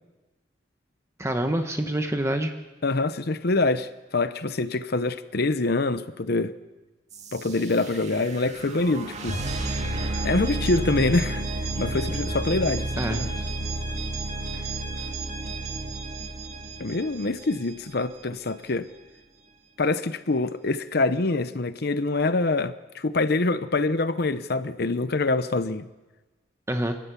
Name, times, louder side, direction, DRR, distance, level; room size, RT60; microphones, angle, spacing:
voice 1, 1.2-2.5 13.0-13.2 14.5-14.7 26.7-27.0, right 1 dB, 15° right, 1.1 m, -26 dB
voice 2, 2.8-6.5 7.3-9.4 10.2-11.4 11.8-13.3 16.8-18.9 19.8-25.9, left 3 dB, 60° left, 0.8 m, -25 dB
sound 1, 7.1-17.9, right 2 dB, 40° right, 2.1 m, -31 dB
28.5 x 12.5 x 8.3 m
head